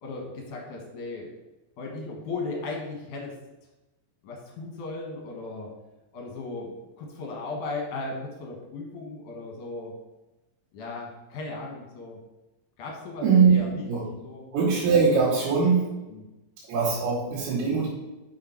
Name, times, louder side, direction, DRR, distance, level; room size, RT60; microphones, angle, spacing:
voice 1, 0.0-1.3 1.8-3.3 4.2-5.7 6.1-9.9 10.7-12.2 12.8-13.9 14.2-14.5 16.1-16.2, left 3 dB, 60° left, 0 dB, 2.2 m, -36 dB
voice 2, 13.2-13.6 13.9-14.0 14.5-15.8 16.7-17.9, right 5 dB, 75° right, -8 dB, 4.6 m, -21 dB
8.2 x 6.4 x 4.5 m, 1.0 s
omnidirectional pair, 5.3 m